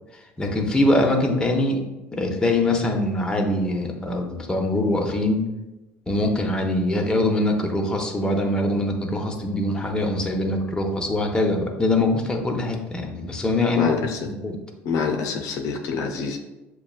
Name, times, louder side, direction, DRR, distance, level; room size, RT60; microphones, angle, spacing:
voice 1, 0.4-1.8 2.1-5.4 6.1-14.6, left 1 dB, 15° left, 1 dB, 0.7 m, -23 dB
voice 2, 13.8-14.3 14.8-16.4, left 5 dB, 70° left, 3 dB, 0.5 m, -26 dB
6.6 x 2.3 x 2.4 m, 1.0 s
supercardioid pair, 80°, 6 cm